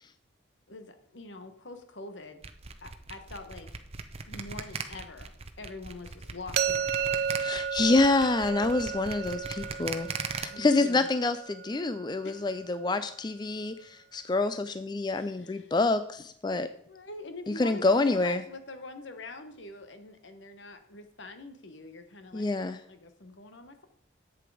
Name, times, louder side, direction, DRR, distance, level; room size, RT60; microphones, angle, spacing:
voice 1, 0.7-2.4 2.8-3.7 4.3-5.3 5.6-7.3 10.5-11.1 12.2-12.4 15.1-15.7 16.9-23.8, left 2 dB, 70° left, 8 dB, 1.2 m, -45 dB
sound 1, 2.4-10.4, right 5 dB, 30° right, 0.8 m, -38 dB
sound 2, 6.6-12.4, right 7 dB, 55° right, 0.4 m, -33 dB
voice 2, 7.4-10.1 10.4-16.7 17.5-18.4 22.3-22.8, left 3 dB, 20° left, 11 dB, 0.4 m, -27 dB
11.0 x 7.9 x 4.9 m, 0.67 s
head